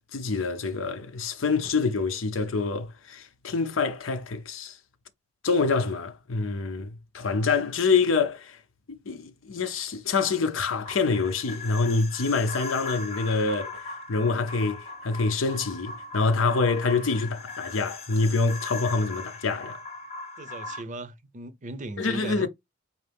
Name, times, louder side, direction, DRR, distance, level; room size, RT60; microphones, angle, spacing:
voice 1, 0.1-4.8 5.4-8.6 9.1-19.8 22.0-22.5, left 4 dB, 85° left, 0.7 m, -26 dB
sound 1, 10.8-20.8, left 3 dB, 35° left, 0.8 m, -39 dB
voice 2, 20.4-22.5, right 2 dB, 40° right, 0.6 m, -37 dB
4.2 x 2.6 x 3.4 m
head